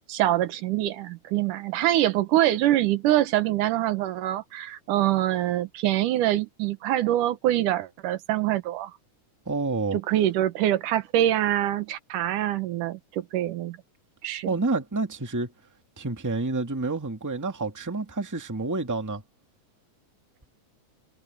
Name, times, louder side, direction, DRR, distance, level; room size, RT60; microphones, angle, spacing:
voice 1, 0.1-8.9 9.9-13.8 14.2-14.5, right 13 dB, 85° right, 2.6 m, -24 dB
voice 2, 9.4-10.0 14.4-15.5 16.0-19.2, right 3 dB, 10° right, 1.4 m, -28 dB
omnidirectional pair, 3.6 m